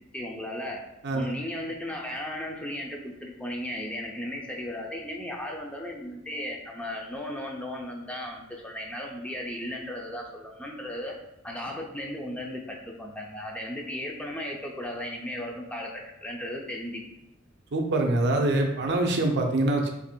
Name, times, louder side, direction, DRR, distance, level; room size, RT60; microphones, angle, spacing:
voice 1, 0.1-0.8 1.1-11.1 11.4-15.9 16.2-17.0, left 1 dB, 5° left, 0 dB, 0.4 m, -35 dB
voice 2, 17.7-19.9, right 2 dB, 55° right, 2 dB, 0.6 m, -24 dB
2.8 x 2.6 x 4.1 m, 0.92 s
head